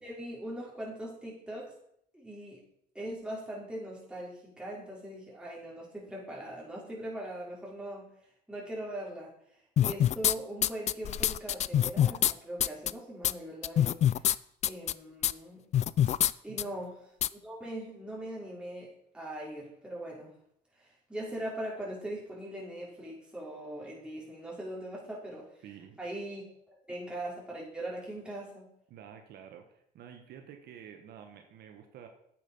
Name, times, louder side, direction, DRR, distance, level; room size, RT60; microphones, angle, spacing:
voice 1, 0.0-1.7 2.1-2.6 2.9-8.1 8.5-9.3 9.8-14.2 14.6-15.6 16.4-20.3 20.8-25.5 26.0-28.7, right 1 dB, 5° right, -5 dB, 4.9 m, -41 dB
sound 1, 9.8-10.3 10.6-12.3 12.6-12.9 13.2-13.3 13.6-14.3 14.6-14.9 15.2-15.3 15.7-16.3 16.6-16.7 17.2-17.3, left 11 dB, 40° left, 0.4 m, -25 dB
voice 2, 16.5-16.8 25.6-26.0 28.9-32.1, right 8 dB, 70° right, 5 dB, 1.3 m, -50 dB
8.9 x 8.6 x 5.4 m, 0.70 s
cardioid pair, 110°, 17 cm